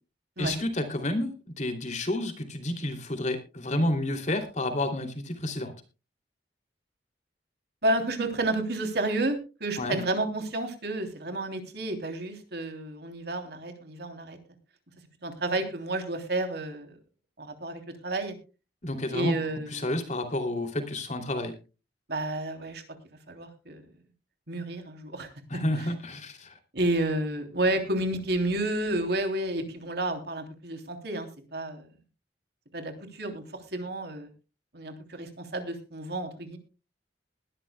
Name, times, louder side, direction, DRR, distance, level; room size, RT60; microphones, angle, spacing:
voice 1, 0.4-5.7 9.8-10.0 18.8-19.4 19.7-21.5 25.5-26.6, left 1 dB, 40° left, 6 dB, 2.9 m, -30 dB
voice 2, 7.8-14.4 15.2-17.0 17.4-18.4 19.1-20.1 22.1-22.8 23.3-23.8 24.5-25.3 25.8-25.9 26.7-31.9 32.7-33.4 33.7-34.3 34.7-36.6, right 1 dB, 65° right, 6 dB, 3.2 m, -31 dB
21.0 x 12.0 x 2.3 m, 0.31 s
head